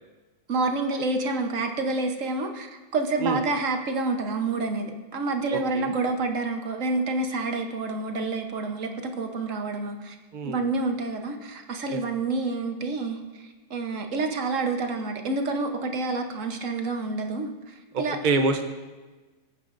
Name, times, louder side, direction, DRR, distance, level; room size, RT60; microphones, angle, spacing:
voice 1, 0.5-10.2 10.4-18.2, right 3 dB, 50° right, 4 dB, 1.2 m, -28 dB
voice 2, 5.5-5.9 10.3-10.6 11.9-12.0 17.9-18.6, right 3 dB, 70° right, 6 dB, 0.4 m, -26 dB
21.5 x 8.8 x 2.6 m, 1.3 s
omnidirectional pair, 2.0 m